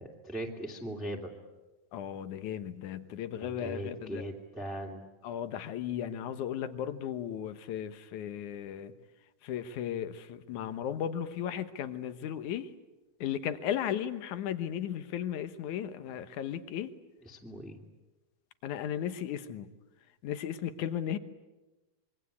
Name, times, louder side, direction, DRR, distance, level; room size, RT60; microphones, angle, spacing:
voice 1, 0.0-1.3 3.4-5.0 17.2-17.8, right 1 dB, ahead, -1 dB, 2.0 m, -39 dB
voice 2, 1.9-4.2 5.2-8.9 9.4-12.7 13.2-16.9 18.6-19.7 20.2-21.2, left 9 dB, 65° left, 11 dB, 2.4 m, -35 dB
26.0 x 23.5 x 8.4 m, 1.1 s
omnidirectional pair, 4.1 m